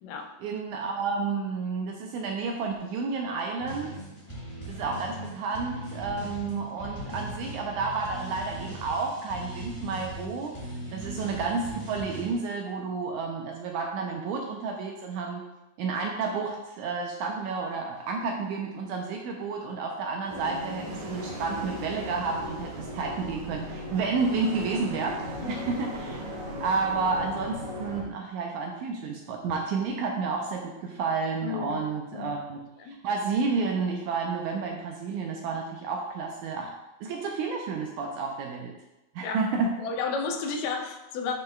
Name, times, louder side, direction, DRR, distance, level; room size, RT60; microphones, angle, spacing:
voice 1, 0.4-3.9 4.7-10.5 10.9-15.4 15.8-26.2 26.6-32.6 33.0-36.7 37.0-38.7 39.1-39.7, right 4 dB, 85° right, 1 dB, 1.8 m, -31 dB
sound 1, 3.6-12.3, right 1 dB, 35° left, 0.5 m, -39 dB
sound 2, 20.3-28.0, equal, 65° right, 2.5 m, -37 dB
voice 2, 31.4-32.4 32.8-33.0 39.2-39.5 39.8-41.3, left 5 dB, 80° left, 4 dB, 2.2 m, -33 dB
9.1 x 5.5 x 2.2 m, 0.97 s
omnidirectional pair, 3.9 m